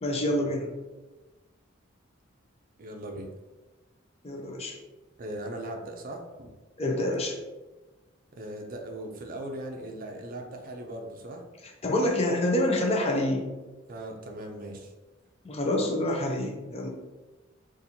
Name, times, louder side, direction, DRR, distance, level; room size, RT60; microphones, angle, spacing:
voice 1, 0.0-0.7 4.2-4.8 6.8-7.4 11.8-13.5 15.4-16.9, left 1 dB, 30° left, 1 dB, 0.5 m, -27 dB
voice 2, 2.8-3.3 5.2-6.5 8.3-11.5 13.9-14.9 15.8-16.0, right 1 dB, 45° right, 3 dB, 0.5 m, -39 dB
4.1 x 2.5 x 2.7 m, 1.2 s
head